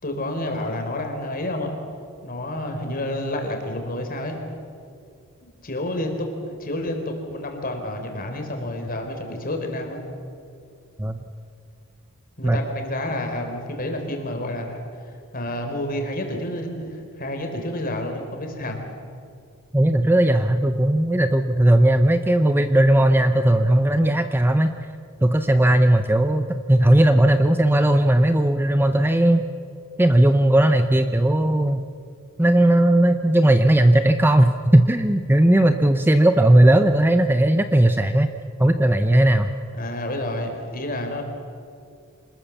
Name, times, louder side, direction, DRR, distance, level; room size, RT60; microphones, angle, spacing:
voice 1, 0.0-1.8 2.2-4.4 5.4-10.0 12.4-14.8 15.3-18.8 39.7-41.2, left 1 dB, 40° left, 3 dB, 3.8 m, -29 dB
voice 2, 19.7-24.9 25.2-29.4 30.0-31.8 32.4-38.3 38.6-39.5, right 1 dB, 10° right, 8 dB, 0.7 m, -17 dB
26.5 x 20.0 x 7.2 m, 2.4 s
head